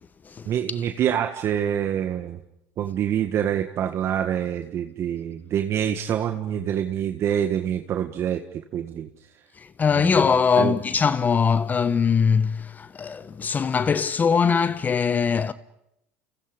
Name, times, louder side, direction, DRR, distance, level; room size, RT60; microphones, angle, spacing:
voice 1, 0.4-2.4 2.8-8.4 8.7-9.1 10.0-10.1 10.6-10.7, right 9 dB, 50° right, 1.6 m, -26 dB
voice 2, 9.6-15.5, left 6 dB, 30° left, 0.9 m, -22 dB
29.5 x 29.5 x 5.3 m
hypercardioid pair, 85°, 6 cm